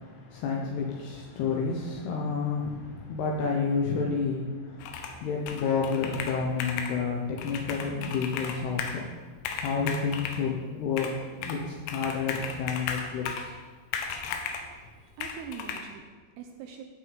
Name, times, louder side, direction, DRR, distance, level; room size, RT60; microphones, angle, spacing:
voice 1, 0.0-9.0 9.6-11.1 11.3-13.5, left 5 dB, 75° left, -1 dB, 2.9 m, -30 dB
Computer keyboard, 4.8-5.2 5.5-7.0 7.4-9.0 9.4-10.4 11.0-11.6 11.9-13.5 13.9-14.7 15.2-15.8, left 6 dB, 90° left, 3.4 m, -35 dB
voice 2, 14.2-16.8, right 7 dB, 80° right, 5 dB, 2.5 m, -45 dB
16.0 x 6.2 x 5.2 m, 1.4 s
omnidirectional pair, 5.1 m